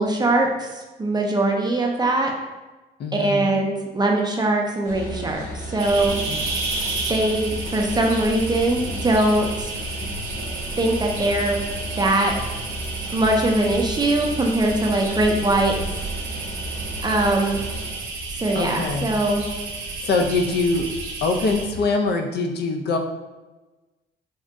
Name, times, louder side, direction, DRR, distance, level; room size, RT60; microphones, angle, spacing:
voice 1, 0.0-2.3 3.1-6.2 7.1-9.7 10.8-11.6 12.0-12.3 13.1-15.7 17.0-17.6 18.4-19.4, right 2 dB, 20° right, 1 dB, 0.4 m, -21 dB
voice 2, 3.0-3.6 18.5-19.2 20.0-20.9 21.2-23.0, left 3 dB, 55° left, 3 dB, 0.4 m, -23 dB
sound 1, 4.8-17.9, equal, 85° left, 1.2 m, -34 dB
sound 2, 5.8-21.8, right 3 dB, 85° right, 0.5 m, -32 dB
3.5 x 2.1 x 2.5 m, 1.2 s
cardioid pair, 90°, 20 cm